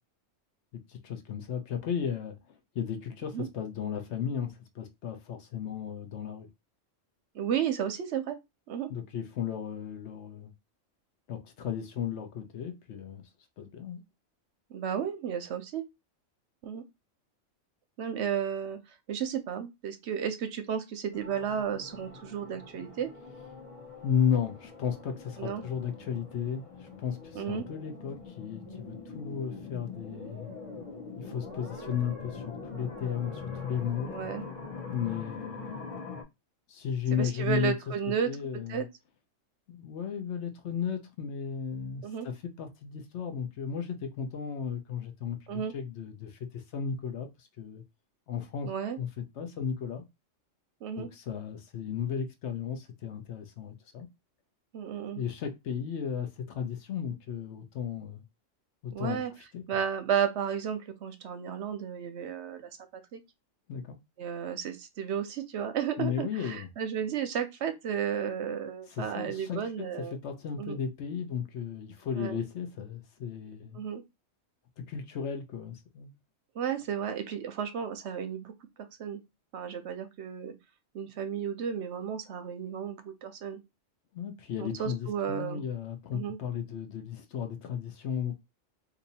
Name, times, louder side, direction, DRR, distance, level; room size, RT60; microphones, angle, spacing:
voice 1, 0.7-6.5 8.9-10.5 11.3-13.2 13.6-14.0 24.0-30.5 31.2-34.1 34.9-36.0 36.7-37.7 38.2-38.8 39.7-47.8 48.3-48.7 49.0-50.0 51.0-54.1 55.1-58.2 58.8-59.2 59.5-59.6 63.7-64.0 66.0-66.7 68.9-73.8 74.8-76.2 84.1-88.3, left 7 dB, 65° left, 0.9 m, -35 dB
voice 2, 7.3-8.4 8.7-8.9 14.7-15.9 16.6-16.8 18.0-18.8 19.1-23.1 25.4-25.6 27.3-27.7 34.1-34.4 37.1-38.3 38.7-38.9 42.0-42.3 45.5-45.7 48.7-49.0 50.8-51.1 54.7-55.2 58.9-59.3 59.7-62.7 63.1-63.2 64.2-70.2 70.6-70.8 72.2-72.4 73.7-74.0 76.6-78.5 79.0-79.2 79.5-80.5 80.9-83.6 84.6-85.6 86.1-86.4, right 8 dB, 65° right, 0.8 m, -33 dB
sound 1, 21.1-36.2, left 4 dB, 30° left, 0.8 m, -43 dB
2.7 x 2.6 x 4.0 m
omnidirectional pair, 1.3 m